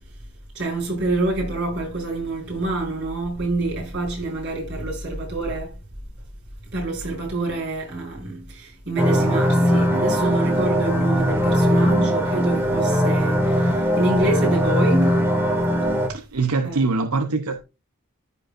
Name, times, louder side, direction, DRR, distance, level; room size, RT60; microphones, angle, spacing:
voice 1, 0.5-5.7 6.7-15.2 16.6-16.8, right 2 dB, 55° right, 5.9 m, -26 dB
sound 1, 9.0-16.1, equal, 10° right, 1.7 m, -20 dB
voice 2, 16.1-17.6, right 3 dB, 85° right, 0.8 m, -23 dB
14.5 x 5.2 x 2.6 m
head